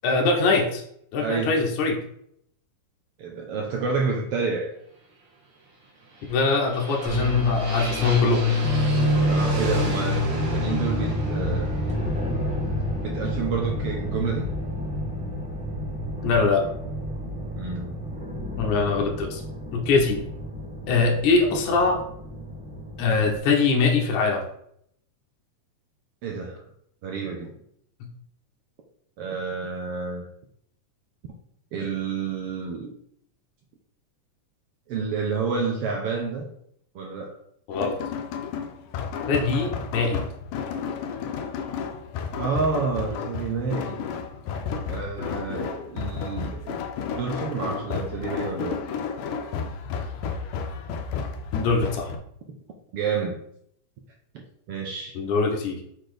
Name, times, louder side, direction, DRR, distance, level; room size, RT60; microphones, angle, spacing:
voice 1, 0.0-0.8 1.1-2.0 6.3-8.5 16.2-16.7 18.6-19.4 19.7-20.2 20.9-22.0 23.0-24.4 37.7-38.0 39.3-40.2 51.5-52.1 55.2-55.8, left 4 dB, 75° left, 1 dB, 2.4 m, -22 dB
voice 2, 1.2-1.5 3.2-4.7 9.3-11.9 12.8-14.5 17.6-18.0 26.2-26.6 27.0-27.6 29.2-30.3 31.7-32.9 34.9-36.5 36.9-37.4 42.4-44.0 44.9-46.8 47.2-48.8 52.9-53.4 54.7-55.1, right 5 dB, 70° right, 1 dB, 1.4 m, -29 dB
sound 1, 6.0-13.9, right 2 dB, 45° right, 2.6 m, -35 dB
sound 2, 7.0-23.4, left 1 dB, 5° right, 1.2 m, -28 dB
sound 3, 37.7-52.2, left 6 dB, 90° left, 2.3 m, -32 dB
6.4 x 4.1 x 5.0 m, 0.70 s
omnidirectional pair, 3.6 m